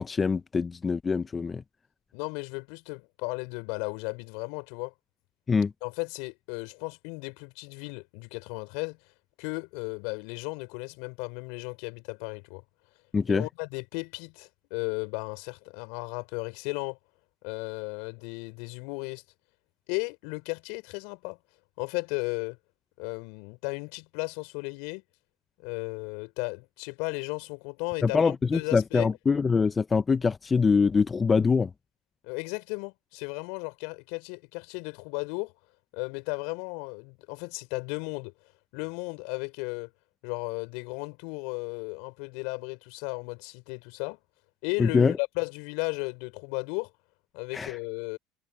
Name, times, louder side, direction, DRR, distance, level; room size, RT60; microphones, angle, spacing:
voice 1, 0.0-1.6 5.5-5.7 13.1-13.4 28.0-31.7 44.8-45.1 47.5-47.8, left 5 dB, 25° left, 0.9 m, -24 dB
voice 2, 2.1-4.9 5.8-9.0 9.4-12.6 13.3-17.0 17.4-19.2 19.9-21.4 21.8-22.6 23.0-25.0 25.6-29.1 32.2-35.5 35.9-38.3 38.7-39.9 40.2-44.2 44.6-46.9 47.3-48.2, left 32 dB, 70° left, 4.4 m, -35 dB
hypercardioid pair, 80°, 0 cm